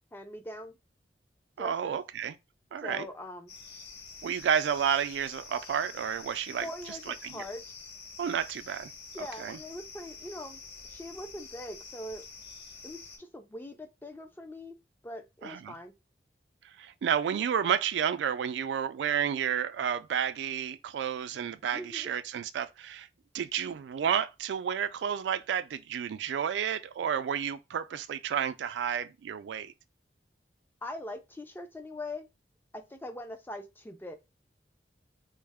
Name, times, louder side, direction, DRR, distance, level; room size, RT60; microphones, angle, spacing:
voice 1, 0.1-0.7 1.6-2.0 2.8-3.5 6.6-7.6 9.1-12.2 12.8-14.8 15.0-15.9 21.7-22.1 30.8-32.3 32.7-34.1, left 1 dB, 10° left, 0.3 m, -42 dB
voice 2, 1.6-2.3 2.7-3.1 4.2-7.4 8.2-8.9 9.2-9.6 15.4-15.8 16.8-23.1 23.3-29.7, right 8 dB, 80° right, 0.3 m, -31 dB
sound 1, 3.5-13.2, left 4 dB, 70° left, 0.7 m, -47 dB
3.1 x 2.0 x 3.4 m
head